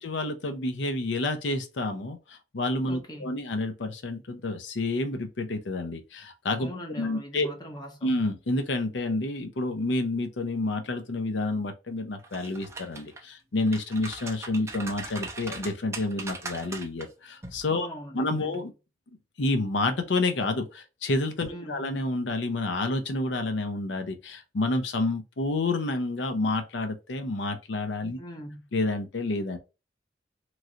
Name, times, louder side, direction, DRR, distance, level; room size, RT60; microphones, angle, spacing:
voice 1, 0.0-6.7 7.0-7.5 8.0-17.9 18.1-18.7 19.4-28.2 28.7-29.6, left 2 dB, 90° left, 0.6 m, -29 dB
voice 2, 2.9-3.5 6.6-8.2 17.7-18.7 21.5-21.8 28.2-28.7, equal, 25° left, 0.8 m, -41 dB
sound 1, 12.2-13.2 13.6-17.1 17.4-17.6, right 3 dB, 15° right, 0.5 m, -39 dB
3.1 x 2.5 x 2.7 m
head